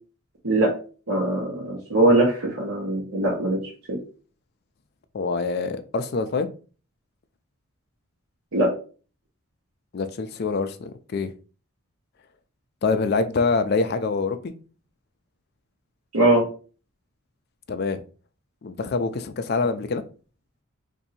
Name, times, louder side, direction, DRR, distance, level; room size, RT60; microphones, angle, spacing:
voice 1, 1.1-3.6 8.5-8.7 16.1-16.4, right 1 dB, 85° right, 1.1 m, -21 dB
voice 2, 5.1-6.5 9.9-11.3 12.8-14.5 17.7-18.0 18.6-20.0, left 4 dB, 45° left, 0.4 m, -25 dB
2.7 x 2.6 x 4.1 m
head